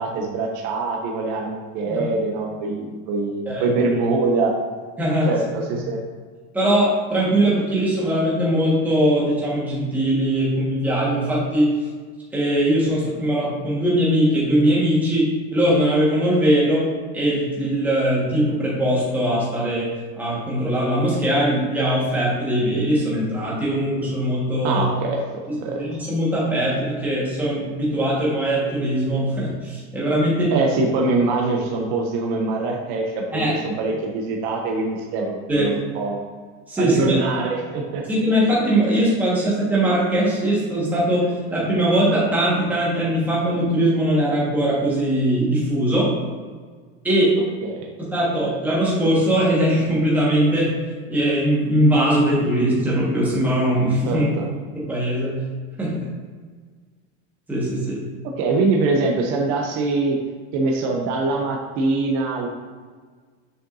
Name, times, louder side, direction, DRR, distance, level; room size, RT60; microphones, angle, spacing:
voice 1, 0.0-4.5 5.3-5.4 5.7-6.0 24.6-25.2 25.6-25.8 30.5-36.2 36.8-38.0 47.6-47.9 54.1-54.4 58.4-60.2 60.5-62.5, right 3 dB, 30° right, 0 dB, 0.5 m, -23 dB
voice 2, 5.0-5.3 6.5-11.7 12.3-16.8 17.1-24.9 25.5-30.5 33.3-33.6 35.5-35.7 36.7-37.2 38.1-46.1 47.0-47.3 48.1-50.7 51.1-54.3 54.7-55.4 55.8-56.0 57.5-58.0, right 1 dB, 5° right, -7 dB, 1.4 m, -21 dB
6.8 x 6.2 x 2.6 m, 1.5 s
supercardioid pair, 175°, 35 cm